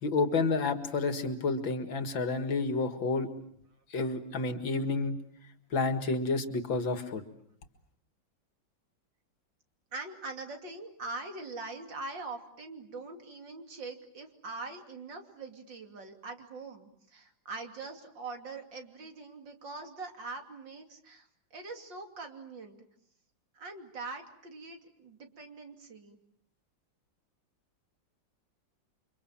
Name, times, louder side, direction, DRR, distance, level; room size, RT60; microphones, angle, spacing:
voice 1, 0.0-3.3 3.9-5.2 5.7-7.2, left 3 dB, 80° left, 9 dB, 2.7 m, -30 dB
voice 2, 9.9-22.8 23.5-26.2, right 3 dB, 70° right, 5 dB, 3.4 m, -43 dB
30.0 x 25.0 x 7.4 m, 0.66 s
omnidirectional pair, 2.1 m